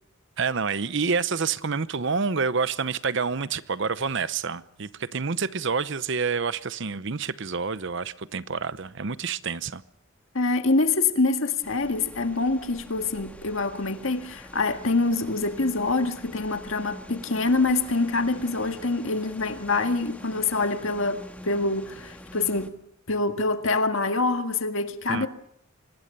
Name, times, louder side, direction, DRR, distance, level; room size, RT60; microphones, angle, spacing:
voice 1, 0.4-9.8 25.1-25.3, right 5 dB, 60° right, 0.8 m, -28 dB
voice 2, 10.3-22.8 23.1-25.3, left 3 dB, 70° left, 1.8 m, -25 dB
sound 1, 11.6-22.7, left 1 dB, 5° left, 1.6 m, -45 dB
25.0 x 20.0 x 6.8 m
head